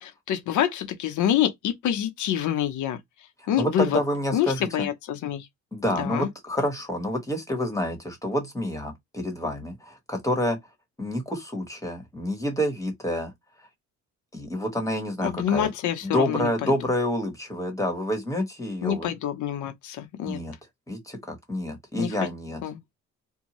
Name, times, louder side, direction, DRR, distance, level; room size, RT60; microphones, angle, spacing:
voice 1, 0.0-3.0 3.5-4.0 4.3-5.5 6.0-6.3 15.2-16.7 18.8-20.4 22.0-22.2 22.6-22.8, left 10 dB, 75° left, 0.7 m, -26 dB
voice 2, 3.6-4.9 5.7-10.6 11.0-13.3 14.3-15.7 16.0-19.1 20.2-20.5 20.9-22.6, left 1 dB, 10° left, 1.3 m, -28 dB
2.6 x 2.2 x 2.9 m
cardioid pair, 90°, 30 cm